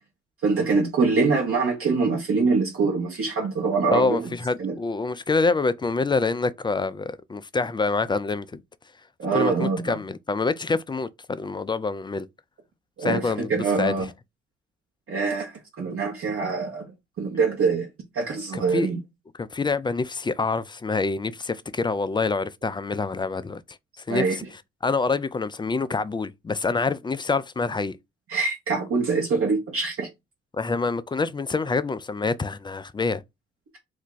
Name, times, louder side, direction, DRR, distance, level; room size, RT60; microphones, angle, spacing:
voice 1, 0.4-4.2 4.6-4.7 9.2-9.8 13.0-13.2 13.5-14.0 15.1-16.8 17.2-17.9 18.1-19.0 24.1-24.4 28.3-30.1, right 4 dB, 50° right, 0.9 m, -24 dB
voice 2, 3.9-8.6 9.3-12.3 13.0-14.1 18.5-18.9 19.4-28.0 30.5-33.2, left 4 dB, 15° left, 0.3 m, -26 dB
2.5 x 2.2 x 3.8 m
hypercardioid pair, 45°, 29 cm